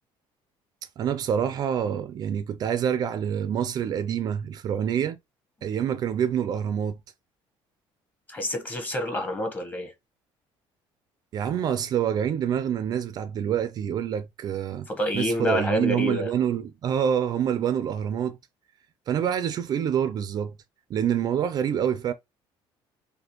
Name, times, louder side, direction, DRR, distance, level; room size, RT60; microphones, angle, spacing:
voice 1, 1.0-5.2 5.6-7.0 11.3-14.9 15.1-18.4 19.1-20.5 20.9-22.1, right 9 dB, 40° right, 0.4 m, -26 dB
voice 2, 8.3-9.9 14.9-16.3, left 1 dB, 15° left, 0.9 m, -28 dB
4.2 x 2.8 x 2.9 m
cardioid pair, 160°, 10 cm